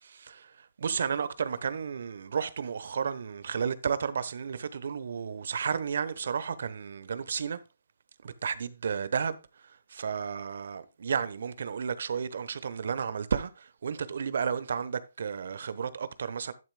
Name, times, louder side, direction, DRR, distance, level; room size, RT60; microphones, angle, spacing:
voice 1, 0.8-7.6 8.2-9.4 9.9-13.5 13.8-16.5, right 6 dB, 65° right, 0.9 m, -32 dB
11.0 x 9.0 x 2.2 m
hypercardioid pair, 155°, 0 cm